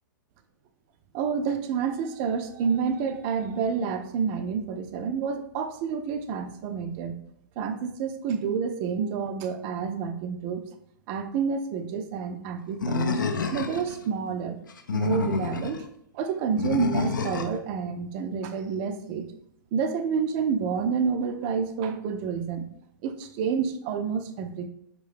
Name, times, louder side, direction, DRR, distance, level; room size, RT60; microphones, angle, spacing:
voice 1, 1.1-7.2 7.6-10.7 11.1-13.2 13.5-14.6 14.9-15.8 16.1-19.3 19.7-22.7 23.0-24.7, right 6 dB, 30° right, 8 dB, 0.4 m, -29 dB
Animal, 12.8-14.0 14.7-15.8 16.6-17.6, left 5 dB, 70° left, 0.4 m, -28 dB
3.6 x 2.6 x 3.3 m, 0.73 s
figure-of-eight pair, 110°, 11 cm